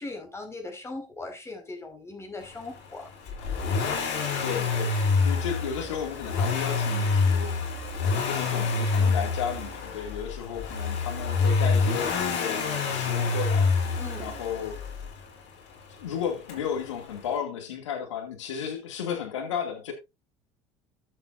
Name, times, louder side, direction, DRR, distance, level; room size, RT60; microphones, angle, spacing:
voice 1, 0.0-3.1 13.9-14.3, left 2 dB, 15° left, 4.8 m, -39 dB
Accelerating revving vroom, 3.3-15.2 16.5-16.6, left 4 dB, 65° left, 3.5 m, -27 dB
voice 2, 4.4-7.6 8.0-14.8 15.9-19.9, left 8 dB, 80° left, 2.4 m, -34 dB
13.0 x 7.8 x 2.6 m
hypercardioid pair, 70°, 15 cm